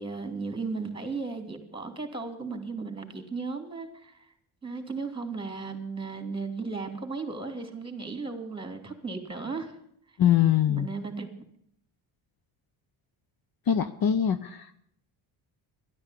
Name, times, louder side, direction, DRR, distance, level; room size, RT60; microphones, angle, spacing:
voice 1, 0.0-4.1 4.6-9.7 10.7-11.3, right 4 dB, 10° right, 7 dB, 2.9 m, -35 dB
voice 2, 10.2-10.9 13.7-14.8, left 10 dB, 45° left, 12 dB, 0.8 m, -23 dB
12.0 x 11.5 x 8.3 m, 0.69 s
cardioid pair, 95°, 49 cm